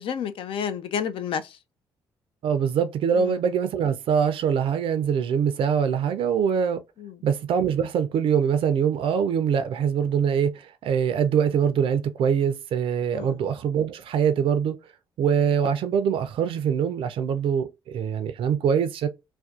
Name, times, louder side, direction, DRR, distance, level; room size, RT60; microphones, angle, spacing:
voice 1, 0.0-1.6 3.1-3.4 7.0-7.2 13.1-13.4, left 7 dB, 60° left, 0.4 m, -30 dB
voice 2, 2.4-6.8 7.2-14.8 15.2-19.1, right 7 dB, 60° right, 0.4 m, -23 dB
2.5 x 2.2 x 2.3 m
hypercardioid pair, 45°, 10 cm